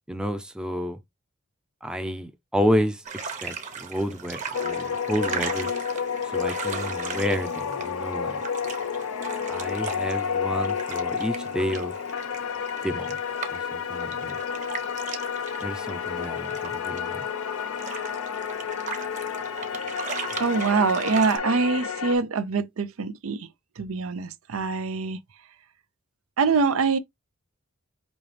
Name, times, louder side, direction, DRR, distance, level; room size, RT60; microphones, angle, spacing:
voice 1, 0.1-1.0 1.8-5.7 6.3-8.4 9.5-11.9 12.8-13.2 13.5-14.4 15.6-17.2, equal, 5° right, 0.5 m, -30 dB
sound 1, 3.0-21.4, right 5 dB, 35° right, 1.0 m, -38 dB
sound 2, 4.5-22.2, left 7 dB, 90° left, 0.5 m, -30 dB
voice 2, 20.4-23.5 23.8-25.2 26.4-27.0, right 4 dB, 80° right, 0.6 m, -24 dB
5.3 x 2.8 x 3.3 m
head